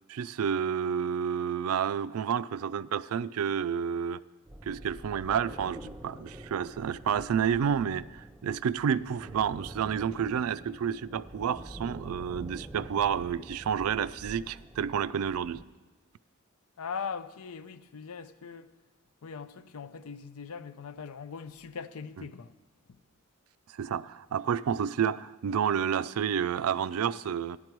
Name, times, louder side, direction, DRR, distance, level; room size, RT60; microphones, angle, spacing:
voice 1, 0.1-4.2 4.6-15.6 23.8-27.6, right 8 dB, 85° right, 0.4 m, -30 dB
sound 1, 4.5-15.6, right 1 dB, 10° right, 0.4 m, -47 dB
voice 2, 16.8-18.7 19.2-22.5, left 6 dB, 85° left, 0.5 m, -40 dB
14.0 x 10.5 x 4.6 m
head